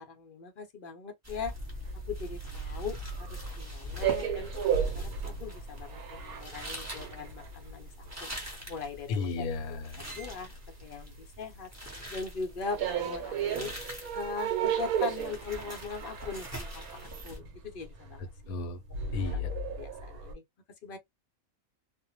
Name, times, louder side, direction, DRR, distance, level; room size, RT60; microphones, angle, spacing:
voice 1, 0.0-1.5 2.1-7.9 8.2-8.3 8.7-9.5 10.0-11.7 12.1-13.7 14.1-18.3 19.2-19.3 19.8-20.4 20.8-21.0, left 5 dB, 55° left, 0.6 m, -40 dB
sound 1, 1.2-17.4, equal, 15° right, 0.6 m, -44 dB
sound 2, 1.5-11.6 11.8-20.3, right 7 dB, 80° right, 1.2 m, -35 dB
voice 2, 9.1-10.0 18.2-18.8 19.1-19.5, left 4 dB, 80° left, 1.1 m, -34 dB
2.6 x 2.1 x 2.8 m
omnidirectional pair, 1.5 m